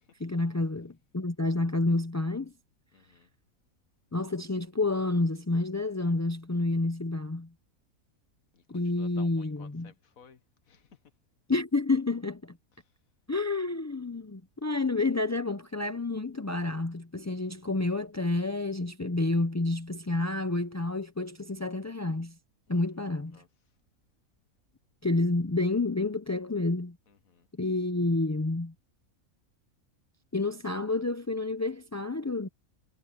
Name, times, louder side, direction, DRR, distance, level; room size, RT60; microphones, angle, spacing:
voice 1, 0.2-2.5 4.1-7.5 8.7-9.9 11.5-12.6 13.3-22.3 22.7-23.4 25.0-27.0 27.6-28.7 30.3-32.5, left 2 dB, 25° left, 0.3 m, -29 dB
voice 2, 2.9-3.3 8.5-10.4 10.7-11.0 22.7-22.8 23.3-23.5 27.1-27.5, left 6 dB, 75° left, 1.7 m, -55 dB
omnidirectional pair, 1.5 m